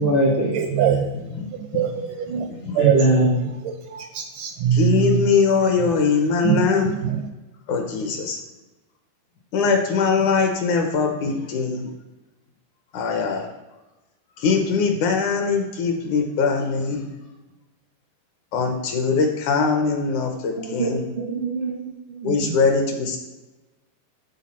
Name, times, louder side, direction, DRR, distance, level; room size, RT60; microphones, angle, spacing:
voice 1, 0.0-0.6 2.8-3.5 20.6-22.6, right 1 dB, 50° right, -3 dB, 0.6 m, -22 dB
voice 2, 0.5-1.1 1.7-2.0 2.3-2.5 2.8-3.0 3.7-5.1 6.5-6.6 6.9-7.0, right 9 dB, 80° right, 6 dB, 1.9 m, -21 dB
voice 3, 1.1-1.5 1.7-2.1 2.5-2.9 4.7-6.9 7.7-8.4 9.5-11.9 12.9-13.5 14.4-17.1 18.5-21.0 22.2-23.2, left 5 dB, 70° left, 4 dB, 2.0 m, -22 dB
13.5 x 4.6 x 4.2 m, 1.1 s
omnidirectional pair, 4.1 m